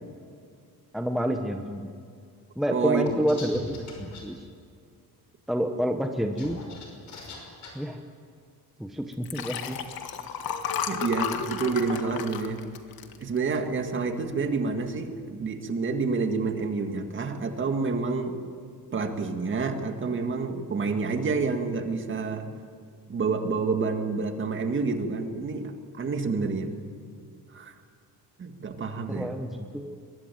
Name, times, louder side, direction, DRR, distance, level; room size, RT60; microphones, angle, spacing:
voice 1, 0.9-1.9 2.6-4.5 5.5-6.6 7.7-8.0 8.8-9.8 29.1-30.0, equal, ahead, 4 dB, 1.0 m, -29 dB
voice 2, 2.7-3.1 10.9-12.6 13.2-18.5 18.9-22.5 23.1-26.7 27.5-27.7 28.4-29.4, right 4 dB, 30° right, 6 dB, 2.0 m, -28 dB
sound 1, 3.0-4.2 6.2-7.7, left 3 dB, 45° left, 5.8 m, -41 dB
Liquid, 9.1-13.8 14.3-14.5 14.8-14.9, left 7 dB, 65° left, 1.9 m, -33 dB
23.0 x 22.0 x 9.3 m, 2.2 s
cardioid pair, 175°, 39 cm